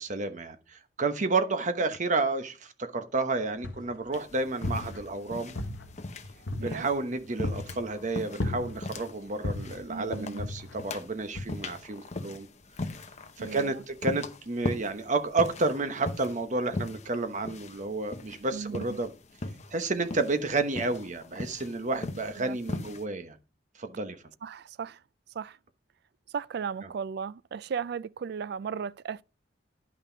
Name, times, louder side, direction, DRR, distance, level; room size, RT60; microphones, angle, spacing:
voice 1, 0.0-5.5 6.6-12.5 13.4-19.1 19.7-23.4 23.8-24.2, right 3 dB, 45° right, 1.0 m, -31 dB
sound 1, 3.6-4.1 4.5-5.3 5.6-7.0 7.4-7.9 8.4-9.0 9.4-9.9 10.4-10.9 11.4-11.5, left 2 dB, 80° left, 1.1 m, -35 dB
sound 2, 4.1-23.0, left 2 dB, 40° left, 0.9 m, -40 dB
voice 2, 9.9-10.5 13.4-13.7 18.5-19.0 22.4-22.6 24.4-25.0 25.3-25.6 26.3-29.2, right 6 dB, 60° right, 0.3 m, -36 dB
10.5 x 5.8 x 4.0 m
head